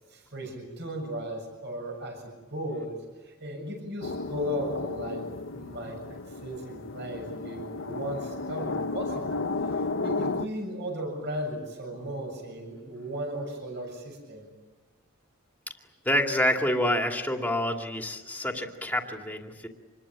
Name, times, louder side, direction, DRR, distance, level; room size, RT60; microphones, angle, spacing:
voice 1, 0.1-3.0 3.2-9.4 10.0-14.5, equal, 55° right, 3 dB, 7.2 m, -36 dB
sound 1, 4.0-10.5, left 3 dB, 65° left, 0.9 m, -33 dB
voice 2, 16.0-19.7, left 1 dB, 10° left, 2 dB, 2.4 m, -27 dB
27.0 x 21.5 x 8.9 m, 1.2 s
head